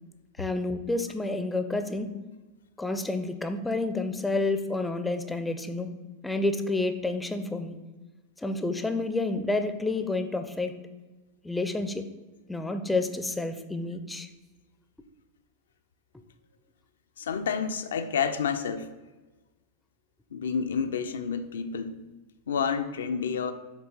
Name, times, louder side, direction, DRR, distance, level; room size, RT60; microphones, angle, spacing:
voice 1, 0.4-2.1 2.8-6.0 6.2-7.8 8.4-10.8 11.4-12.0 12.5-14.3, left 2 dB, 5° left, 8 dB, 0.4 m, -29 dB
voice 2, 17.2-18.9 20.3-22.0 22.5-23.5, left 6 dB, 65° left, 10 dB, 0.4 m, -29 dB
6.0 x 3.8 x 4.2 m, 1.2 s
figure-of-eight pair, 90°, 0 cm